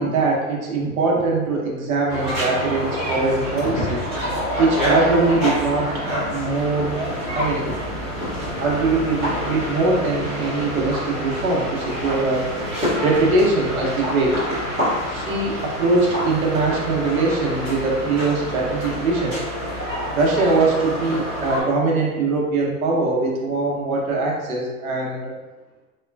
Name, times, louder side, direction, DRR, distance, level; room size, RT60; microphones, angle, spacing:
voice 1, 0.0-4.0 4.6-5.9 6.3-6.9 7.3-7.7 8.6-12.5 13.0-14.4 15.1-19.4 20.1-25.4, right 3 dB, 70° right, -2 dB, 0.8 m, -22 dB
sound 1, 2.1-21.6, equal, 10° right, 0.8 m, -27 dB
3.0 x 2.1 x 2.2 m, 1.2 s
hypercardioid pair, 175°, 44 cm